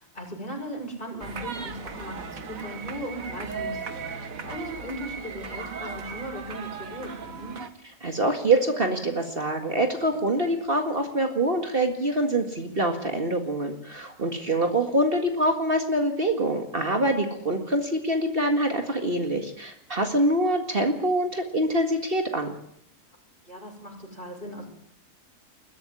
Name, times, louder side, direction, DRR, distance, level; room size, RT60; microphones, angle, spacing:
voice 1, 0.1-7.6 23.4-24.7, right 1 dB, 40° left, 0 dB, 6.8 m, -37 dB
sound 1, 1.2-7.7, right 5 dB, 85° right, 2.0 m, -37 dB
voice 2, 8.0-22.5, right 1 dB, 45° right, 4 dB, 2.1 m, -25 dB
21.5 x 12.5 x 9.8 m, 0.71 s
omnidirectional pair, 1.4 m